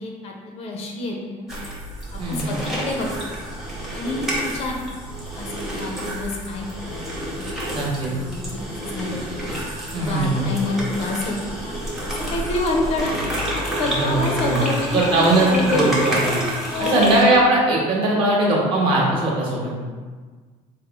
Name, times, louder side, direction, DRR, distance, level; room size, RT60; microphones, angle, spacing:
voice 1, 0.0-1.5 2.3-3.4 3.9-5.0 5.3-7.0 7.3-7.4 7.7-9.3 9.9-11.4 11.6-11.8 12.0-13.4 13.8-15.8 16.7-17.1, left 2 dB, 45° left, 1 dB, 0.5 m, -28 dB
sound 1, 1.5-17.2, equal, ahead, 0.7 m, -29 dB
voice 2, 2.2-2.5 7.7-8.1 9.9-10.5 13.9-14.7 14.9-16.4 16.8-19.7, right 2 dB, 40° right, -4 dB, 1.0 m, -20 dB
4.0 x 2.0 x 4.0 m, 1.5 s
cardioid pair, 160°, 14 cm